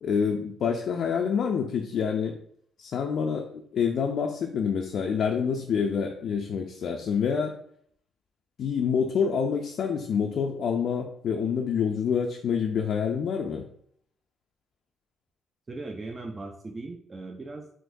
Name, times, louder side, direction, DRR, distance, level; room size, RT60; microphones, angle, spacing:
voice 1, 0.0-2.4 2.8-7.5 8.6-13.7, left 6 dB, 65° left, 2 dB, 0.3 m, -27 dB
voice 2, 15.7-17.7, right 2 dB, 30° right, 2 dB, 0.4 m, -38 dB
3.7 x 2.6 x 2.6 m, 0.65 s
cardioid pair, 90°, 0 cm